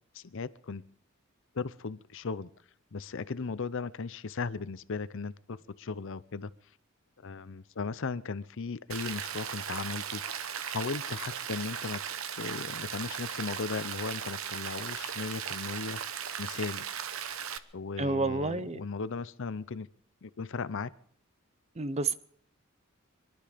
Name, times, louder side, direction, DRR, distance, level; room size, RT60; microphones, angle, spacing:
voice 1, 0.1-0.9 1.5-2.5 2.9-6.5 7.2-10.2 10.7-12.0 12.4-16.0 16.4-16.9 17.7-19.9 20.2-20.9, left 4 dB, 65° left, 16 dB, 0.6 m, -37 dB
Rain, 8.9-17.6, right 8 dB, 70° right, 0.9 m, -37 dB
voice 2, 18.0-18.8 21.8-22.1, right 3 dB, 30° right, 15 dB, 0.6 m, -29 dB
23.5 x 12.0 x 5.1 m, 0.63 s
head